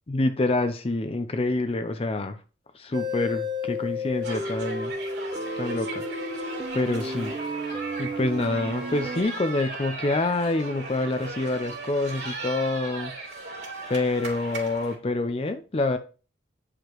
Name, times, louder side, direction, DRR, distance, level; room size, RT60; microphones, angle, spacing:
voice 1, 0.1-2.4 2.7-4.9 5.6-6.0 6.3-6.4 6.7-7.6 8.0-13.1 13.9-16.0, left 2 dB, 35° left, 9 dB, 0.5 m, -27 dB
sound 1, 2.9-9.2, left 2 dB, 25° right, 0.7 m, -32 dB
sound 2, 4.2-14.9, right 3 dB, 75° right, 2.5 m, -37 dB
9.3 x 4.9 x 3.0 m, 0.35 s
head